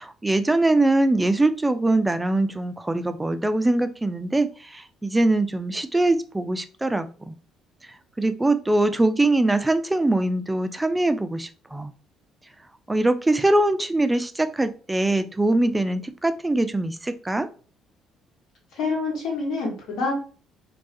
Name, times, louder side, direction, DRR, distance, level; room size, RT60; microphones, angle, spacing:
voice 1, 0.0-7.4 8.2-11.9 12.9-17.5, right 2 dB, 15° right, 9 dB, 0.4 m, -22 dB
voice 2, 18.8-20.1, left 3 dB, 65° left, -2 dB, 1.3 m, -26 dB
2.3 x 2.3 x 2.6 m, 0.38 s
hypercardioid pair, 50°, 0 cm